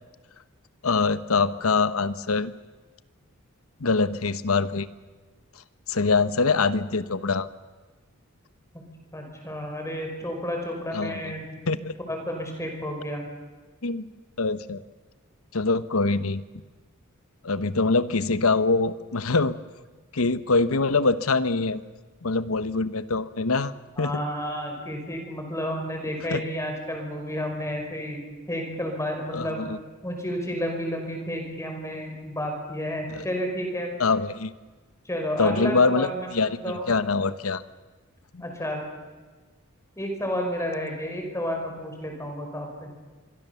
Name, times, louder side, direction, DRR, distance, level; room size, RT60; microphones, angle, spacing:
voice 1, 0.8-2.5 3.8-4.9 5.9-7.5 10.9-11.3 11.7-11.9 13.8-14.1 14.4-14.8 15.5-16.4 17.4-19.6 20.1-21.8 22.2-23.7 24.0-24.2 26.3-26.4 29.3-29.8 33.1-33.2 34.0-34.5 35.4-37.6 38.3-38.4, left 3 dB, 85° left, 14 dB, 1.0 m, -24 dB
voice 2, 9.1-11.8 12.1-13.2 24.0-28.2 28.5-29.7 30.0-33.9 35.1-36.9 38.4-38.8 40.0-42.9, equal, 15° left, 2 dB, 5.1 m, -31 dB
25.5 x 23.0 x 7.0 m, 1.3 s
head